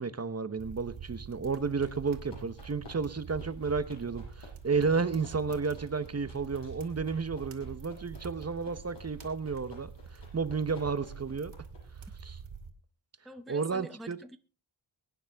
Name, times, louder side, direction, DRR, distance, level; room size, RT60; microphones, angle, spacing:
voice 1, 0.0-11.5 12.2-12.4 13.5-14.2, right 5 dB, 30° right, 0.9 m, -32 dB
sound 1, 0.6-12.7, right 5 dB, 70° right, 2.6 m, -46 dB
sound 2, 1.5-12.0, left 2 dB, 60° left, 8.0 m, -54 dB
voice 2, 13.2-14.4, right 1 dB, ahead, 0.7 m, -46 dB
23.0 x 9.5 x 3.5 m
wide cardioid pair, 100°, 49 cm